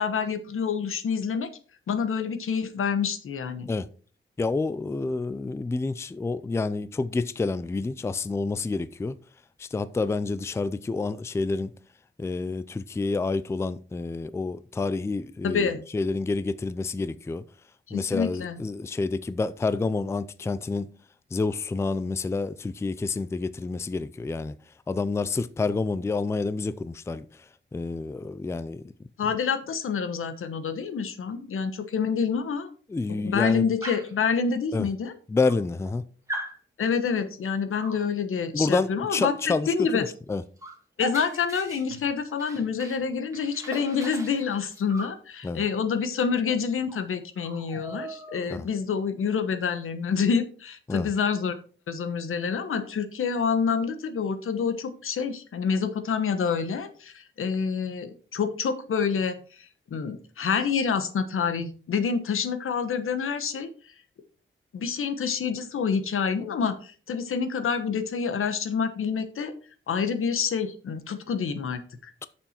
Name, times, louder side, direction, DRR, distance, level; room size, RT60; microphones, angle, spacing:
voice 1, 0.0-1.5 1.9-3.7 15.4-15.8 17.9-18.6 29.2-32.7 33.2-35.1 36.8-40.0 41.0-51.5 51.9-63.7 64.7-69.5 69.9-72.1, left 6 dB, 85° left, 1.2 m, -27 dB
voice 2, 4.4-9.2 9.6-11.7 12.2-17.4 17.9-20.9 21.3-24.6 24.9-27.3 27.7-28.8 32.9-33.6 34.7-34.9 35.3-36.0 38.5-40.4 45.4-45.6 48.5-48.7 50.9-51.1, left 3 dB, 15° left, 0.3 m, -28 dB
Dog, 33.8-34.2 35.1-35.2 35.4-36.0 36.3-36.6 37.8-38.1 39.9-40.0 40.3-43.0 43.3-45.2 46.5-46.6 46.9-47.1 47.4-48.6, right 1 dB, 15° right, 1.8 m, -39 dB
8.9 x 6.9 x 4.4 m
wide cardioid pair, 180°, 21 cm